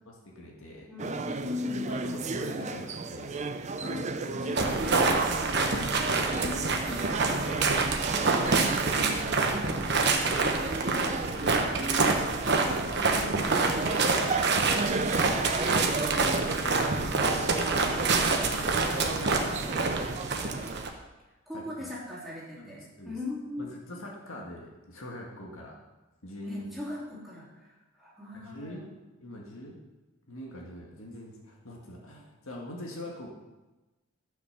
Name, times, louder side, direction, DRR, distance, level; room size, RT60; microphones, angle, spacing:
voice 1, 0.1-0.9 1.7-3.4 3.8-5.6 6.1-8.0 14.9-15.2 17.4-18.0 18.5-20.5 21.5-21.6 22.6-23.2 23.6-25.8 26.2-26.7 28.4-28.9 29.2-29.8 30.3-33.3, left 1 dB, 70° left, -1 dB, 1.9 m, -43 dB
voice 2, 0.9-2.1 2.6-2.7 3.8-5.5 6.0-6.9 8.9-10.5 11.0-12.0 12.9-14.6 15.2-17.2 21.5-23.8 26.4-28.9, left 2 dB, ahead, -7 dB, 3.4 m, -41 dB
sound 1, 1.0-20.8, right 3 dB, 30° right, 0.5 m, -34 dB
sound 2, 4.6-20.9, right 3 dB, 50° right, 1.2 m, -27 dB
12.5 x 6.2 x 6.8 m, 1.1 s
head